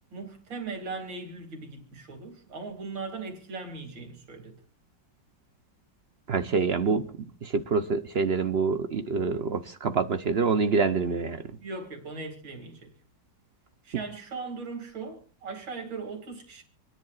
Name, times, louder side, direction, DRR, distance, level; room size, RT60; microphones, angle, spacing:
voice 1, 0.1-4.6 11.6-12.9 13.8-16.6, right 4 dB, 90° right, 3.3 m, -39 dB
voice 2, 6.3-7.1 7.4-11.4, right 5 dB, 65° right, 0.6 m, -26 dB
27.0 x 10.5 x 2.4 m
omnidirectional pair, 2.0 m